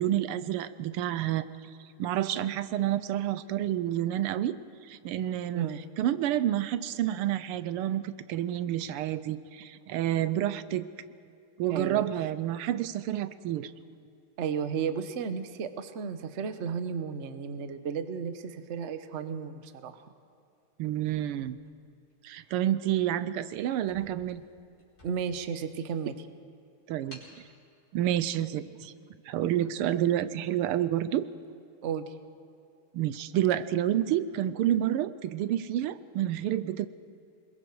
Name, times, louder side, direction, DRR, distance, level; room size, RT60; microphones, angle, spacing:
voice 1, 0.0-1.4 2.0-4.6 4.8-5.7 6.0-10.9 11.6-13.7 20.8-21.6 22.2-24.4 26.9-27.2 27.9-28.9 29.3-31.3 32.9-36.9, right 12 dB, 85° right, 14 dB, 1.6 m, -29 dB
voice 2, 11.7-12.1 14.4-20.0 25.0-26.1 31.8-32.1, right 6 dB, 50° right, 10 dB, 0.9 m, -33 dB
sound 1, 21.0-22.3 22.9-23.1 23.4-23.5 23.8-25.5 26.0-26.1 27.1-27.4, left 1 dB, 35° left, 4.7 m, -54 dB
26.0 x 21.5 x 4.7 m, 2.6 s
omnidirectional pair, 2.4 m